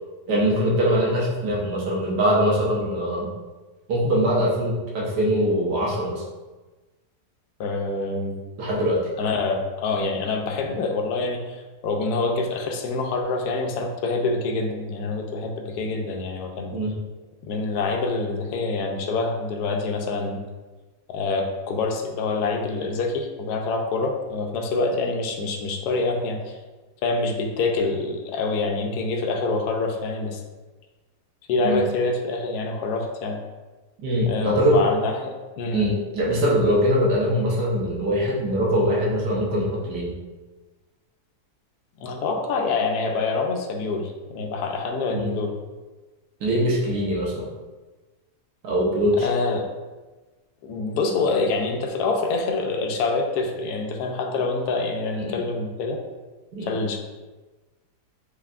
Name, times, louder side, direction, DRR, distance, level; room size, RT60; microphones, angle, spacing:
voice 1, 0.3-3.3 3.9-6.2 8.6-9.1 16.7-16.9 31.6-31.8 34.0-34.8 35.7-40.1 45.1-45.3 46.4-47.5 48.6-49.3 55.2-55.4 56.5-56.7, equal, 85° right, -3 dB, 1.6 m, -22 dB
voice 2, 7.6-8.4 9.2-16.7 17.5-20.4 21.1-26.6 27.0-30.4 31.5-33.4 34.2-35.9 42.0-45.5 49.2-49.7 50.6-56.0 56.6-57.0, left 3 dB, 80° left, 2 dB, 1.2 m, -26 dB
5.6 x 3.9 x 2.4 m, 1.2 s
omnidirectional pair, 1.7 m